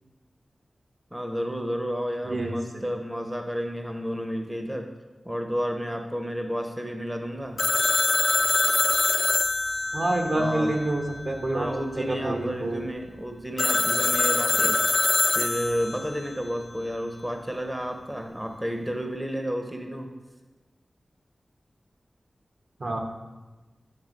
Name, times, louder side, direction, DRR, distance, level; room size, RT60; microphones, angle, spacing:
voice 1, 1.1-4.9 5.2-7.6 10.3-10.7 11.5-14.8 15.3-20.1, equal, 10° right, 4 dB, 0.6 m, -31 dB
voice 2, 2.2-2.5 9.9-11.7 12.0-12.8 22.8-23.0, right 1 dB, 65° right, 2 dB, 1.0 m, -27 dB
Telephone, 7.6-11.2 13.6-16.1, left 3 dB, 55° left, 0.4 m, -24 dB
8.8 x 3.5 x 5.1 m, 1.2 s
wide cardioid pair, 80°, 0 cm